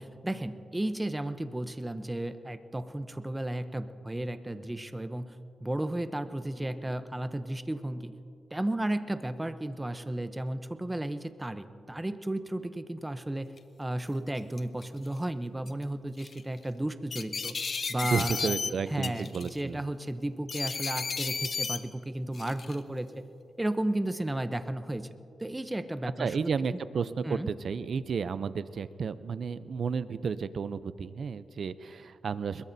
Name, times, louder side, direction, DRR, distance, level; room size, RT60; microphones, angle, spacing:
voice 1, 0.0-8.1 8.5-13.5 13.8-17.6 17.9-23.2 23.6-25.1 25.4-26.8 27.2-27.5, right 1 dB, 15° right, 10 dB, 0.7 m, -34 dB
sound 1, 13.6-13.7 14.3-14.8 15.7-15.8 16.2-16.4 17.1-18.7 19.0-19.6 20.5-21.8 22.3-22.8, left 5 dB, 50° left, 0.8 m, -33 dB
voice 2, 18.0-19.8 26.2-32.6, right 6 dB, 60° right, 14 dB, 0.5 m, -32 dB
22.5 x 21.0 x 2.7 m, 2.7 s
cardioid pair, 100°, 0 cm